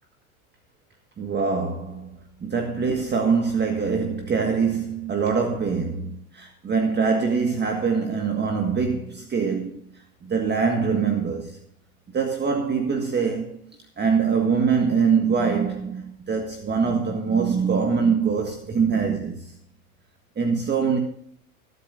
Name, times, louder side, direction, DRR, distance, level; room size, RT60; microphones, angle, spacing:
voice 1, 1.2-2.2 2.4-9.7 10.2-11.6 12.1-13.6 14.0-19.5 20.3-21.0, right 5 dB, 25° right, 1.7 m, -23 dB
24.0 x 8.2 x 2.6 m
hypercardioid pair, 90°, 43 cm